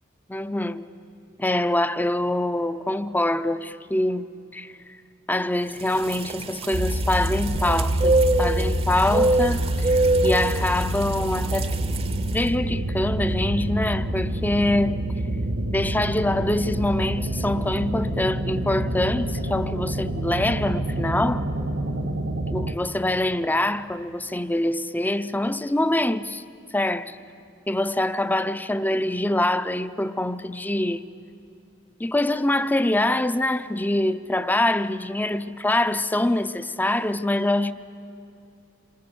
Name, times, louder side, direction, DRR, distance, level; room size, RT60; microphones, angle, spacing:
voice 1, 0.3-0.9 1.4-4.3 4.5-4.7 5.3-9.9 10.2-11.7 12.3-15.0 15.7-21.5 22.5-26.4 26.7-27.2 27.7-31.1 32.0-37.7, left 1 dB, 10° left, 0.6 m, -24 dB
sound 1, 5.8-12.4, right 2 dB, 30° right, 0.8 m, -25 dB
sound 2, 6.7-22.7, right 1 dB, 70° right, 1.6 m, -27 dB
27.0 x 26.5 x 6.9 m
head